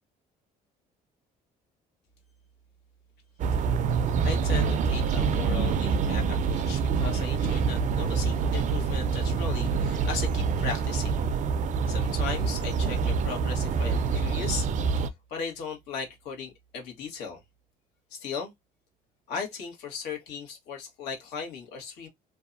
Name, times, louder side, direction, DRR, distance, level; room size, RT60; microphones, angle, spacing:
sound 1, 3.4-15.1, right 5 dB, 50° right, 0.4 m, -26 dB
voice 1, 4.2-11.2 11.9-17.4 18.1-18.5 19.3-22.1, left 6 dB, 90° left, 1.2 m, -37 dB
2.6 x 2.2 x 2.5 m
cardioid pair, 110°, 17 cm